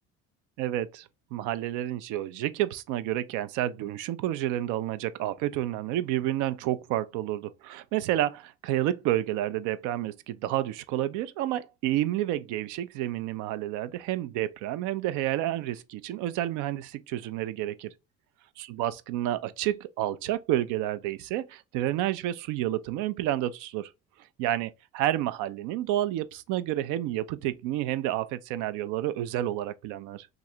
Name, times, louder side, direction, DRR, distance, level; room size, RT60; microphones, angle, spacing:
voice 1, 0.6-17.9 18.6-23.9 24.4-30.3, right 13 dB, 70° right, 0.5 m, -30 dB
3.0 x 2.5 x 2.6 m
supercardioid pair, 80°, 32 cm